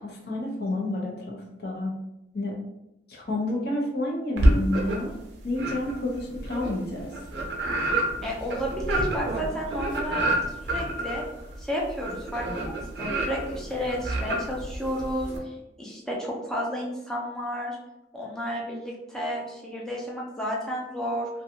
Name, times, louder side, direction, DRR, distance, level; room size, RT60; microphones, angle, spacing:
voice 1, 0.0-1.9 2.3-2.6 3.1-5.1 5.4-7.1, left 1 dB, 60° left, -1 dB, 0.7 m, -30 dB
sound 1, 4.4-5.2 5.5-15.4, right 1 dB, 65° right, 0.6 m, -28 dB
voice 2, 8.2-11.3 11.6-17.8 18.1-21.3, equal, 5° left, -3 dB, 0.5 m, -32 dB
2.6 x 2.3 x 2.7 m, 0.90 s
head